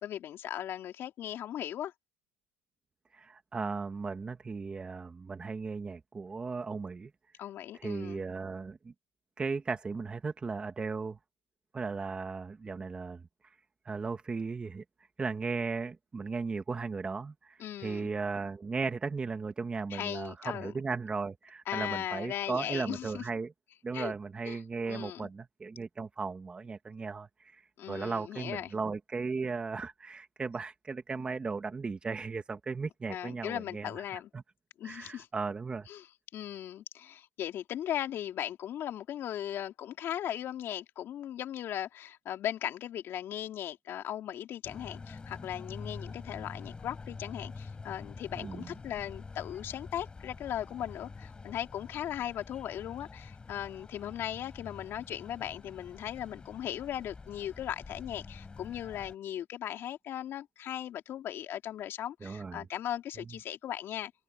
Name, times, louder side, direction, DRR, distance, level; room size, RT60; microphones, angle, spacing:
voice 1, 0.0-1.9 7.4-8.2 17.6-18.1 19.9-20.7 21.7-23.2 23.9-24.1 24.4-24.6 24.9-25.3 27.8-28.7 33.1-34.3 34.8-35.3 35.9-36.1 36.3-64.1, left 11 dB, 35° left, 3.1 m, -38 dB
voice 2, 3.1-7.1 7.7-8.9 9.4-11.2 11.7-13.2 13.8-14.8 15.2-23.5 23.8-27.6 27.9-33.9 34.3-34.4 34.8-35.9 48.4-48.7 62.2-62.7, right 4 dB, 15° right, 2.1 m, -36 dB
sound 1, 44.6-59.1, left 4 dB, 15° left, 7.0 m, -47 dB
supercardioid pair, 125°, 6 cm